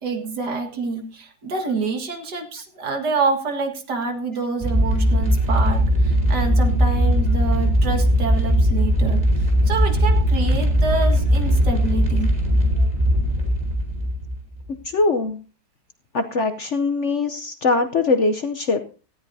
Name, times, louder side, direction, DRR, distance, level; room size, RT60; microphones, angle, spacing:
voice 1, 0.0-12.3, right 4 dB, 65° right, 5 dB, 2.3 m, -27 dB
sound 1, 4.6-14.7, equal, 20° right, 3.6 m, -19 dB
voice 2, 14.8-15.4 16.1-18.9, left 3 dB, 50° left, 7 dB, 0.9 m, -22 dB
18.0 x 13.5 x 2.7 m, 0.35 s
omnidirectional pair, 1.9 m